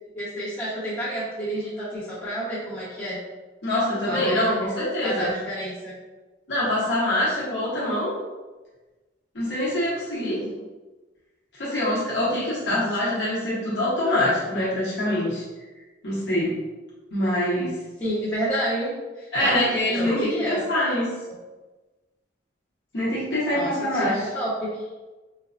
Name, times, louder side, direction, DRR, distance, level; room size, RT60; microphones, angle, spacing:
voice 1, 0.1-3.2 4.0-4.4 5.0-6.0 10.2-10.5 12.7-12.8 18.0-19.5 19.9-20.6 21.3-21.4 23.5-24.5, equal, 20° left, -12 dB, 1.0 m, -30 dB
voice 2, 3.6-5.3 6.5-8.1 9.3-10.4 11.5-15.4 16.0-16.6 17.1-17.7 19.3-21.1 22.9-24.1, left 1 dB, 70° left, -7 dB, 1.0 m, -24 dB
4.4 x 2.2 x 2.5 m, 1.2 s
head